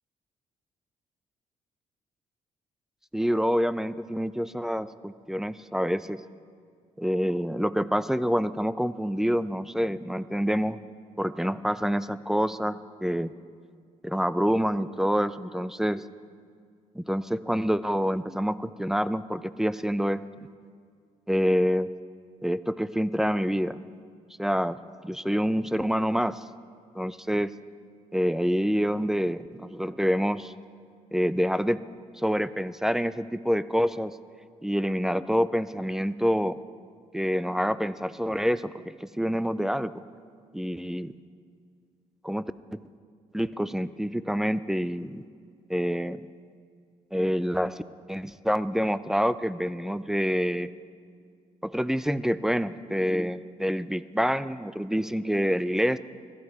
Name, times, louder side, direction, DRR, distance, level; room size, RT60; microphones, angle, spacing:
voice 1, 3.1-6.2 7.0-10.8 11.2-13.3 14.0-16.1 17.0-20.2 21.3-21.9 22.4-23.8 24.4-24.8 25.0-26.4 27.0-27.5 28.1-30.5 31.1-31.8 32.2-34.2 34.6-36.6 37.1-40.0 40.5-41.1 42.2-42.8 43.3-45.2 45.7-46.3 47.1-47.8 48.1-50.7 51.6-56.0, equal, 5° right, 15 dB, 0.4 m, -27 dB
15.5 x 12.5 x 4.7 m, 2.1 s
cardioid pair, 85°, 14 cm